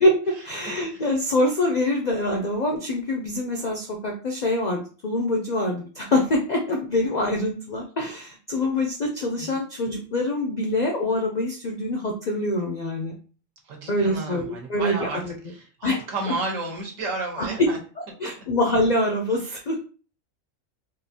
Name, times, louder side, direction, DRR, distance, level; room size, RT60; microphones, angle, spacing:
voice 1, 0.0-13.1 13.9-15.3 15.8-16.0 17.4-17.7 18.2-19.8, left 1 dB, 65° left, 2 dB, 0.4 m, -25 dB
voice 2, 13.6-15.2 15.4-17.8 19.4-19.6, right 3 dB, 75° right, 0 dB, 1.3 m, -32 dB
3.7 x 2.5 x 2.7 m, 0.38 s
omnidirectional pair, 1.4 m